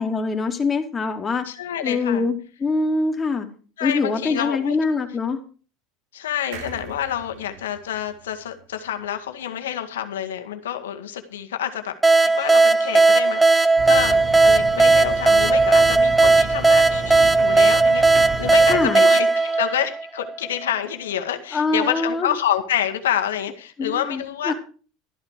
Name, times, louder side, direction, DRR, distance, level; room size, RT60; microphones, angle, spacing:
voice 1, 0.0-1.4 1.8-3.5 3.8-5.4 18.7-19.0 21.5-22.3 23.8-24.5, left 3 dB, 25° left, 4 dB, 3.0 m, -24 dB
voice 2, 1.4-2.3 3.8-4.8 6.1-12.0 12.2-24.5, left 10 dB, 90° left, 7 dB, 1.9 m, -28 dB
sound 1, 6.5-10.0 10.4-10.5 10.7-10.8, right 7 dB, 75° right, 4.2 m, -43 dB
sound 2, 12.0-20.5, right 3 dB, 10° right, 1.0 m, -16 dB
sound 3, 13.8-18.9, right 4 dB, 55° right, 1.9 m, -33 dB
13.0 x 12.0 x 4.9 m, 0.38 s
hypercardioid pair, 90°, 0 cm